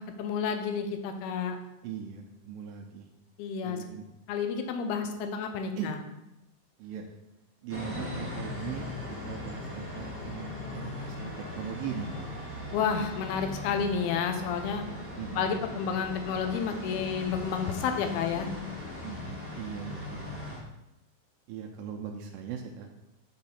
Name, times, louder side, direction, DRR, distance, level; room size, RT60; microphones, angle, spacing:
voice 1, 0.0-1.6 3.4-3.8 4.3-6.0 12.7-14.8 15.4-18.5, left 6 dB, 85° left, 6 dB, 2.6 m, -30 dB
voice 2, 1.8-3.1 3.6-4.0 5.8-5.9 6.8-7.1 7.6-8.9 9.3-12.2 15.2-15.5 19.0-20.6 21.5-22.9, right 7 dB, 80° right, 2 dB, 2.2 m, -39 dB
sound 1, 7.7-20.6, left 2 dB, 20° left, 0.3 m, -39 dB
6.9 x 3.7 x 5.8 m, 0.93 s
omnidirectional pair, 4.4 m